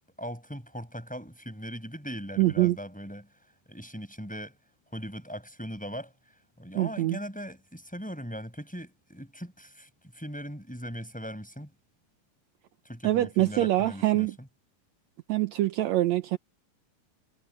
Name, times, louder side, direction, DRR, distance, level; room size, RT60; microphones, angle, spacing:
voice 1, 0.2-3.3 3.7-4.6 4.9-6.1 6.6-11.7 12.8-14.5, equal, ahead, 6.6 m, -39 dB
voice 2, 2.4-2.8 6.7-7.2 13.0-14.3 15.3-16.4, right 16 dB, 75° right, 1.7 m, -24 dB
omnidirectional pair, 4.0 m